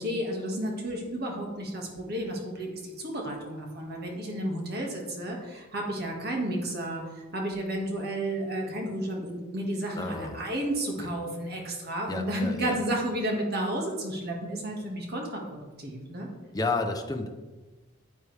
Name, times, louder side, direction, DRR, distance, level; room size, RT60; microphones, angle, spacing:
voice 1, 0.0-16.3, right 1 dB, 50° right, 0 dB, 2.0 m, -32 dB
voice 2, 10.0-10.4 12.1-12.8 16.5-17.3, left 3 dB, 20° left, 4 dB, 0.8 m, -31 dB
9.5 x 9.5 x 3.5 m, 1.2 s
head